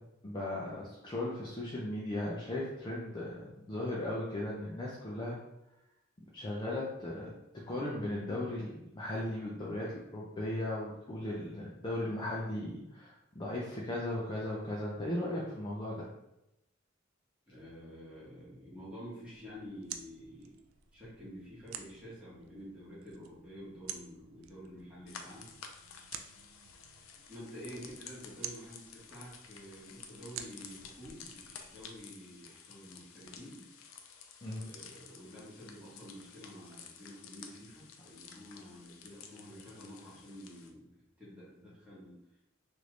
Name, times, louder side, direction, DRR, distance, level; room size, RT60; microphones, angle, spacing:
voice 1, 0.2-5.4 6.3-7.3 7.7-16.1 34.4-34.6, left 1 dB, 25° left, -5 dB, 0.4 m, -37 dB
voice 2, 17.5-20.6 20.9-25.5 27.3-33.6 34.6-42.1, equal, 5° right, -9 dB, 1.4 m, -49 dB
sound 1, 19.2-32.0, right 8 dB, 80° right, 0.3 m, -50 dB
sound 2, 25.1-40.7, left 6 dB, 85° left, 0.4 m, -52 dB
3.2 x 2.5 x 3.1 m, 0.88 s
head